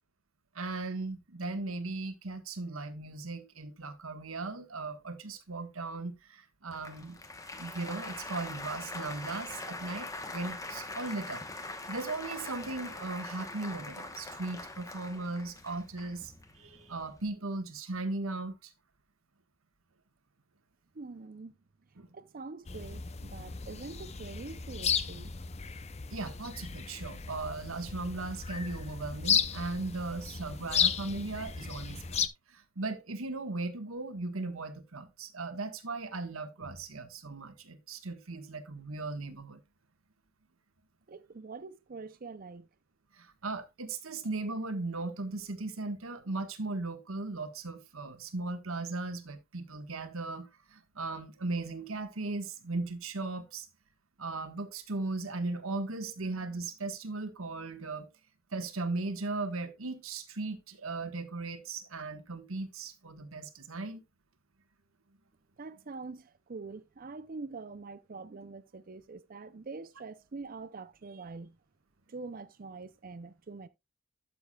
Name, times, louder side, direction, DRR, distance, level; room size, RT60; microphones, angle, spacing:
voice 1, 0.5-7.2 7.6-18.7 22.0-22.1 26.1-39.6 43.1-53.7 54.2-58.1 58.5-64.0, right 3 dB, 75° right, 1.5 m, -37 dB
Applause, 6.7-17.3, left 2 dB, 15° left, 1.0 m, -43 dB
voice 2, 20.9-21.5 22.1-25.3 41.1-42.7 65.6-71.6 72.1-73.7, right 4 dB, 40° right, 0.5 m, -44 dB
sound 1, 22.7-32.3, left 7 dB, 30° left, 0.5 m, -34 dB
12.5 x 7.0 x 2.3 m
head